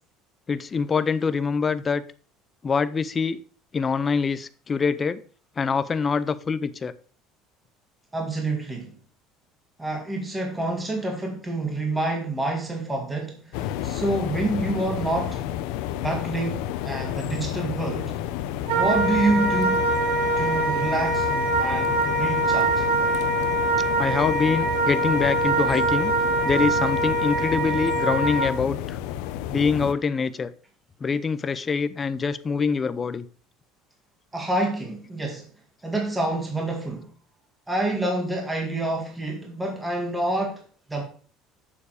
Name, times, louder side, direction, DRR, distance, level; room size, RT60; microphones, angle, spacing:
voice 1, 0.5-2.0 2.6-3.4 3.7-5.2 5.6-6.9 23.1-23.2 24.0-26.1 26.4-29.0 29.5-30.5 31.0-33.2, left 5 dB, 20° left, 14 dB, 0.5 m, -25 dB
voice 2, 8.1-8.9 9.8-15.4 16.0-18.1 18.7-19.8 20.4-22.8 34.3-35.5 35.8-37.1 37.7-40.6 40.9-41.0, right 2 dB, 10° right, 1 dB, 1.9 m, -27 dB
sound 1, 13.5-29.9, left 11 dB, 80° left, 0.7 m, -31 dB
Wind instrument woodwind instrument, 18.7-28.5, right 2 dB, 80° right, 1.5 m, -24 dB
7.1 x 6.9 x 4.9 m, 0.42 s
cardioid pair, 145°, 0 cm